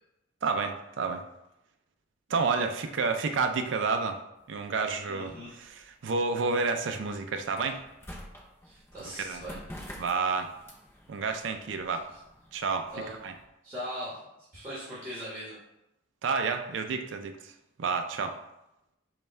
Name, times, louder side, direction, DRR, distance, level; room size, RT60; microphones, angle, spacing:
voice 1, 0.4-1.3 2.3-4.2 4.5-7.8 9.2-9.4 10.0-10.5 11.1-12.1 12.5-12.9 13.2-13.3 16.2-17.5 17.8-18.4, right 4 dB, 65° right, 6 dB, 0.4 m, -30 dB
sound 1, 4.4-13.4, equal, 10° left, 0.6 m, -50 dB
voice 2, 5.0-5.5 8.6-9.6 12.9-13.1 13.6-14.2 14.5-15.6, equal, 15° right, -9 dB, 1.4 m, -39 dB
5.3 x 2.3 x 4.3 m, 0.89 s
head